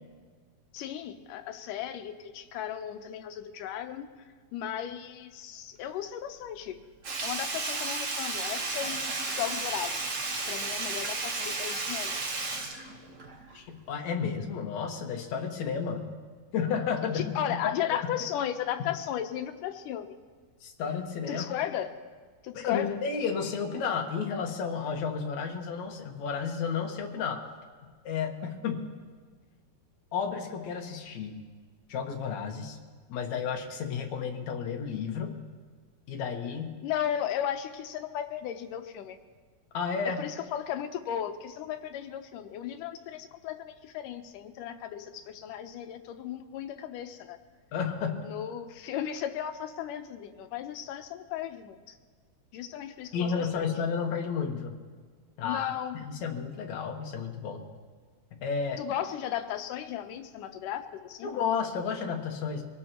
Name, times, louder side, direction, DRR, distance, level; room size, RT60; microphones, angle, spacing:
voice 1, 0.7-4.1 4.5-6.8 7.2-10.1 10.5-12.2 17.1-20.2 21.3-21.9 22.4-23.0 36.8-39.2 40.1-47.4 48.2-52.0 52.5-53.6 55.4-56.0 58.8-61.3, left 10 dB, 90° left, 8 dB, 2.4 m, -35 dB
Sink (filling or washing), 7.0-13.6 13.9-14.0, right 3 dB, 55° right, 0.8 m, -33 dB
voice 2, 13.5-16.1 16.5-17.4 20.6-21.5 22.5-27.4 28.0-28.9 30.1-31.3 31.9-32.8 33.1-35.4 36.1-36.8 39.7-40.2 47.7-48.4 53.1-54.7 55.4-57.6 58.4-58.8 61.2-62.6, left 6 dB, 65° left, 2 dB, 2.6 m, -32 dB
24.0 x 18.0 x 3.0 m, 1.5 s
omnidirectional pair, 3.6 m